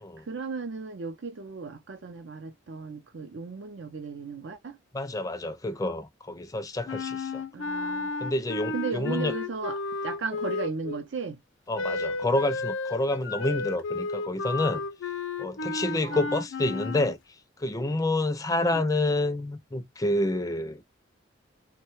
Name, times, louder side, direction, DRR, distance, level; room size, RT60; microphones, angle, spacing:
voice 1, 0.3-4.8 7.5-8.1 8.7-11.4 16.0-16.3 18.6-18.8, right 4 dB, 65° right, 0.5 m, -35 dB
voice 2, 4.9-7.4 8.2-9.3 11.7-14.8 15.4-17.2 17.6-20.8, left 2 dB, 20° left, 0.4 m, -28 dB
Wind instrument woodwind instrument, 6.9-11.0 11.7-17.1, left 3 dB, 75° left, 0.5 m, -32 dB
3.1 x 2.2 x 3.1 m
head